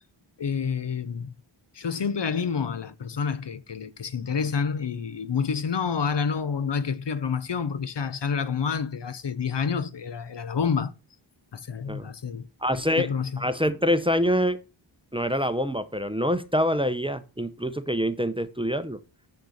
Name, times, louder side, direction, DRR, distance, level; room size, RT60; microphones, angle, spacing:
voice 1, 0.4-1.3 1.7-10.9 11.5-12.5 12.9-13.4, left 6 dB, 60° left, 0.8 m, -28 dB
voice 2, 12.6-13.1 13.4-14.6 15.1-19.0, equal, 10° right, 0.7 m, -25 dB
6.7 x 6.6 x 6.4 m
wide cardioid pair, 60°, 49 cm